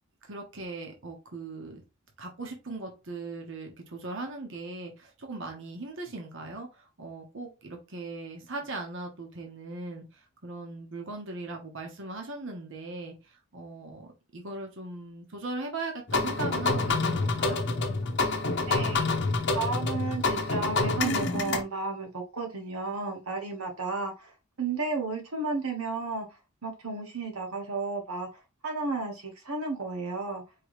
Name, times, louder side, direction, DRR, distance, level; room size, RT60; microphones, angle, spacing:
voice 1, 0.2-1.8 2.2-17.6, right 2 dB, 60° right, 2 dB, 1.1 m, -39 dB
sound 1, 16.1-21.6, left 3 dB, 55° left, 0.8 m, -27 dB
voice 2, 18.7-19.1 19.5-26.3 26.6-30.4, right 3 dB, 90° right, 3 dB, 1.5 m, -33 dB
4.7 x 3.1 x 3.1 m, 0.27 s
head